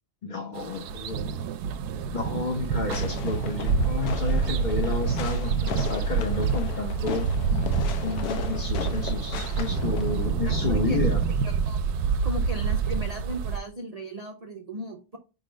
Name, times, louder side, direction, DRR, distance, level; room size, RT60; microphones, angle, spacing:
voice 1, 0.2-1.2 2.1-7.3 8.0-11.2, left 4 dB, 40° left, 0.8 m, -31 dB
sound 1, 0.6-13.6, right 5 dB, 80° right, 1.1 m, -27 dB
Fireworks, 2.9-10.3, left 8 dB, 75° left, 1.2 m, -37 dB
voice 2, 10.5-11.0 11.7-11.8 12.2-15.2, equal, 50° right, 0.4 m, -36 dB
5.2 x 4.0 x 5.1 m
omnidirectional pair, 1.7 m